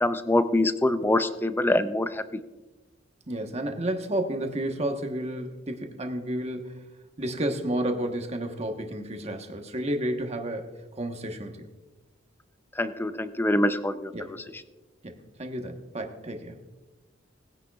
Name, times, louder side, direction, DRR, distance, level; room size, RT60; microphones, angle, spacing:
voice 1, 0.0-2.2 12.8-14.1, left 1 dB, 10° left, 11 dB, 0.5 m, -24 dB
voice 2, 3.3-6.9 7.2-11.7 14.1-14.4 15.0-16.6, right 1 dB, 35° right, 4 dB, 1.2 m, -31 dB
19.5 x 10.0 x 2.4 m, 1.1 s
head